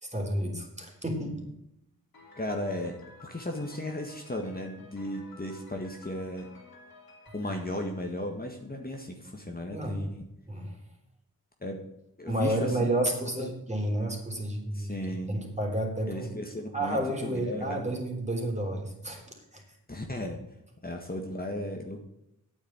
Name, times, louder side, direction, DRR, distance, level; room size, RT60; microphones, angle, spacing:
voice 1, 0.0-1.4 9.7-10.1 10.5-10.8 12.3-16.3 16.7-19.2 19.5-19.6, right 1 dB, 20° right, 1 dB, 3.7 m, -31 dB
Piano, 2.1-9.0, left 3 dB, 75° left, 3.3 m, -54 dB
voice 2, 2.3-6.5 7.3-10.2 11.6-11.8 12.2-12.9 13.4-13.5 14.7-15.3 16.1-17.9 19.9-20.4 20.8-22.0, left 1 dB, 25° left, 2 dB, 1.8 m, -35 dB
8.9 x 7.3 x 8.8 m, 0.84 s
cardioid pair, 55°, 37 cm